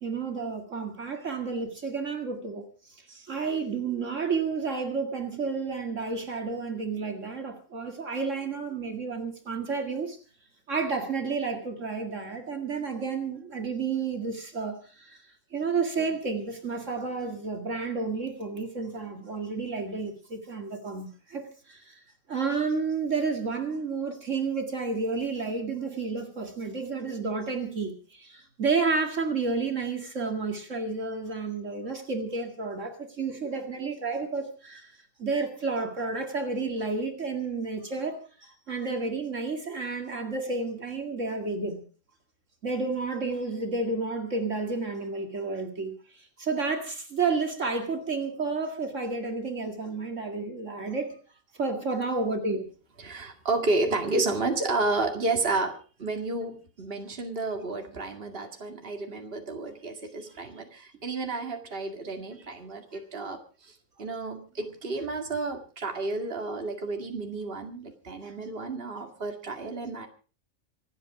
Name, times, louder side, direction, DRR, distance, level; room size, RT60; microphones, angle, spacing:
voice 1, 0.0-10.2 10.7-22.0 22.3-41.9 42.6-51.2 51.5-52.7 68.2-68.3, right 4 dB, 60° right, 2.4 m, -31 dB
voice 2, 53.0-63.7 64.0-70.1, right 3 dB, 45° right, 2.4 m, -31 dB
26.5 x 9.0 x 4.9 m
omnidirectional pair, 1.4 m